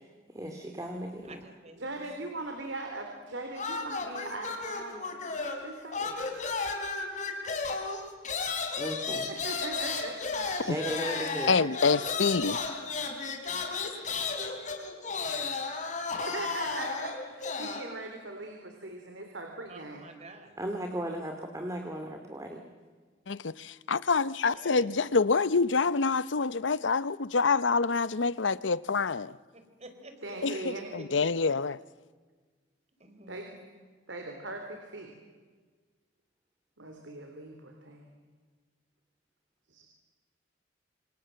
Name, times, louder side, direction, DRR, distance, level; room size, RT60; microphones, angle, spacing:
voice 1, 0.3-1.4 8.8-9.3 10.6-11.5 20.6-22.6, right 1 dB, 15° right, 2.4 m, -36 dB
voice 2, 1.2-2.1 19.7-20.6 24.5-24.9 29.5-31.1 31.4-31.5 33.0-33.4, right 2 dB, 35° right, 4.1 m, -49 dB
voice 3, 1.8-5.1 5.6-6.2 9.3-10.6 16.2-20.1 30.2-30.9 33.3-33.6 34.1-35.1 36.8-38.1 39.7-39.9, right 2 dB, 80° right, 3.6 m, -40 dB
sound 1, 3.5-5.7 5.9-17.9, left 4 dB, 40° left, 4.2 m, -34 dB
voice 4, 11.5-12.6 23.3-29.4 30.4-31.8, left 4 dB, 80° left, 0.8 m, -27 dB
27.5 x 27.0 x 7.7 m
head